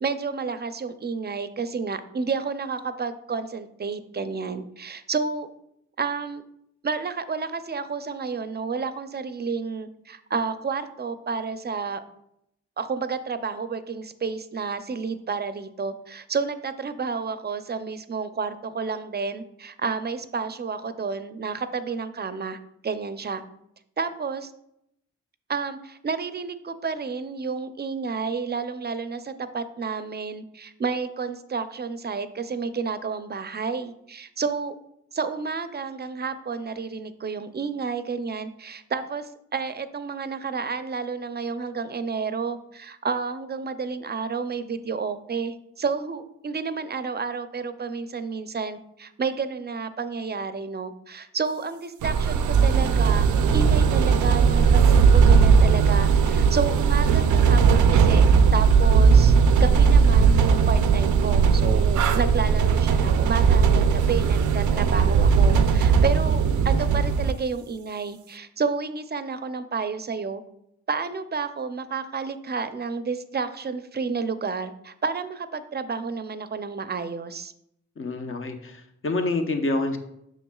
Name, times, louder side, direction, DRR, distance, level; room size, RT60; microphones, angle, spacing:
voice 1, 0.0-5.5 6.0-6.4 6.8-12.0 12.8-22.6 22.8-23.4 24.0-24.5 25.5-34.7 35.1-58.3 58.5-70.4 70.9-77.5, right 5 dB, 35° right, 11 dB, 0.5 m, -30 dB
sound 1, 52.0-67.3, right 6 dB, 85° right, 0.5 m, -18 dB
voice 2, 78.0-80.0, left 2 dB, 45° left, 6 dB, 0.9 m, -27 dB
6.9 x 5.9 x 2.3 m, 0.78 s
cardioid pair, 60°, 29 cm